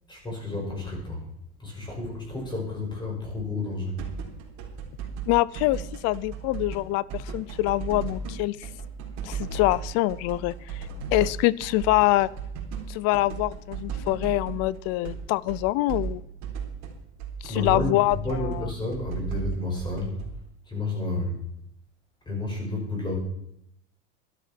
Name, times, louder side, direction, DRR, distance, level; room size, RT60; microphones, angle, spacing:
voice 1, 0.1-1.3 1.6-4.0 17.5-20.2 20.7-21.4 22.3-23.2, left 2 dB, 10° left, -1 dB, 5.6 m, -31 dB
sound 1, 4.0-6.8 7.1-15.2 15.5-20.3, right 6 dB, 50° right, 3.9 m, -35 dB
voice 2, 5.3-8.6 9.2-12.3 12.9-16.2 17.4-18.2 18.5-18.6, left 18 dB, 45° left, 22 dB, 0.5 m, -25 dB
12.5 x 12.0 x 6.1 m, 0.76 s
supercardioid pair, 150°, 36 cm